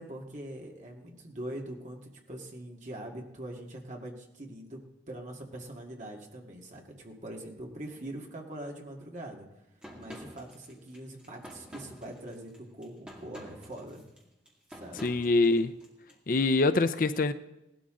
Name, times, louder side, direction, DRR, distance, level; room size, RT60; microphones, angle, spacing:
voice 1, 0.0-4.8 5.1-9.5 9.9-14.0 14.7-15.1, right 1 dB, 45° right, 1 dB, 2.0 m, -43 dB
sound 1, 9.8-16.1, equal, 5° right, 2.3 m, -49 dB
voice 2, 15.0-15.7 16.3-17.3, left 3 dB, 50° left, 11 dB, 0.5 m, -24 dB
18.0 x 12.5 x 3.8 m, 0.91 s
head